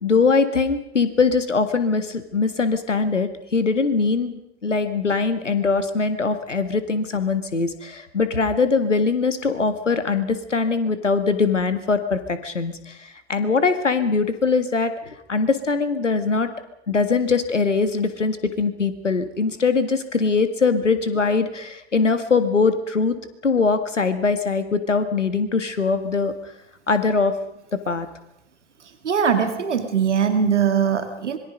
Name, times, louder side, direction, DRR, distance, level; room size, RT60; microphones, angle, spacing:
voice 1, 0.0-13.0 13.3-16.5 16.9-23.1 23.4-26.3 26.9-27.3 27.7-28.1, left 4 dB, 85° left, 10 dB, 1.9 m, -22 dB
voice 2, 29.0-31.4, right 7 dB, 75° right, 8 dB, 2.1 m, -21 dB
25.5 x 22.5 x 5.3 m, 0.84 s
figure-of-eight pair, 80°, 36 cm